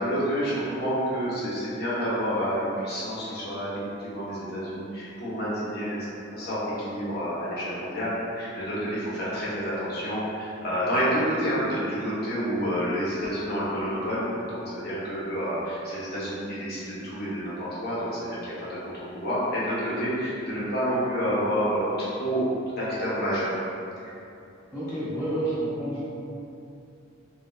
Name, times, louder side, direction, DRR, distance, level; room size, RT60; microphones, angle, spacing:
voice 1, 0.0-6.1 6.3-22.5 22.8-23.5 24.0-24.1, equal, 55° left, -9 dB, 0.9 m, -29 dB
voice 2, 24.7-26.0, right 1 dB, ahead, -16 dB, 1.1 m, -29 dB
3.1 x 3.0 x 2.3 m, 2.7 s
head